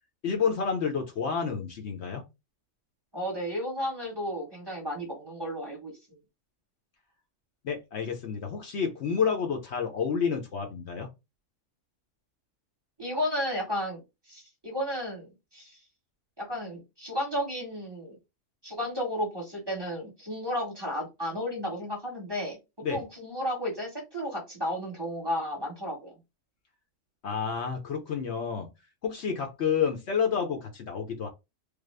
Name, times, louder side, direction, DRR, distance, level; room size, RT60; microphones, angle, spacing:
voice 1, 0.2-2.2 7.6-11.1 22.8-23.0 27.2-28.7 29.0-31.3, left 6 dB, 60° left, 0.9 m, -29 dB
voice 2, 3.1-5.9 13.0-14.0 14.3-15.8 16.4-18.2 18.6-22.6 22.9-26.1, equal, 20° right, 1.0 m, -33 dB
3.4 x 2.0 x 3.2 m
omnidirectional pair, 1.4 m